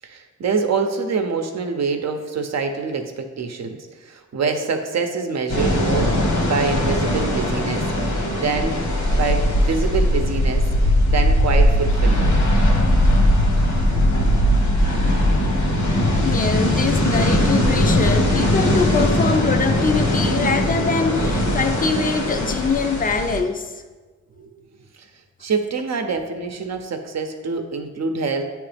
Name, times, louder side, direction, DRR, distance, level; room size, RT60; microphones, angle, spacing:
voice 1, 0.0-3.8 4.0-7.8 8.3-8.8 9.1-10.6 11.1-12.4 24.4-24.5 25.4-28.4, right 4 dB, 60° right, 0.7 m, -25 dB
sound 1, 5.5-23.4, left 1 dB, 75° left, 1.3 m, -19 dB
voice 2, 16.2-23.7, left 4 dB, 30° left, 0.5 m, -23 dB
8.8 x 3.2 x 3.4 m
cardioid pair, 80°, 30 cm